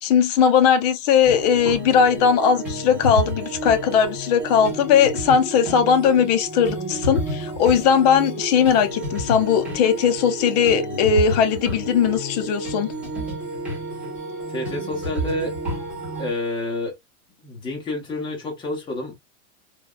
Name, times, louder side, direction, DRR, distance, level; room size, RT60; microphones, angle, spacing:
voice 1, 0.0-12.9, left 7 dB, 35° left, 0.4 m, -19 dB
sound 1, 1.2-16.3, equal, 5° right, 1.1 m, -30 dB
voice 2, 14.5-15.5 16.2-16.9 17.4-19.2, left 2 dB, 15° left, 0.8 m, -29 dB
3.4 x 2.1 x 2.2 m
supercardioid pair, 165°, 36 cm